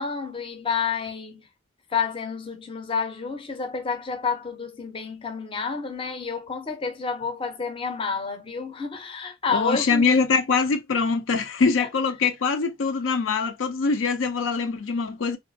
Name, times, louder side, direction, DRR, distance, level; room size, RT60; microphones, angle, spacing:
voice 1, 0.0-1.5 1.9-10.2 11.8-11.9, left 5 dB, 25° left, 0.5 m, -29 dB
voice 2, 9.5-15.4, left 4 dB, 85° left, 0.5 m, -23 dB
2.6 x 2.4 x 2.5 m
head